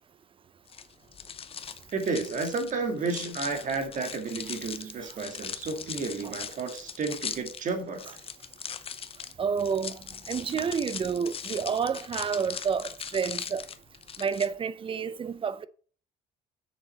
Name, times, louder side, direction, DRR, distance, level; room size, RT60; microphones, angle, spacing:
sound 1, 0.7-14.5, left 7 dB, 35° left, 0.7 m, -40 dB
voice 1, 1.9-8.2, right 4 dB, 50° right, 1.9 m, -32 dB
voice 2, 9.4-13.7 14.2-15.7, right 6 dB, 30° right, 0.5 m, -29 dB
6.8 x 6.4 x 4.1 m
cardioid pair, 110°, 17 cm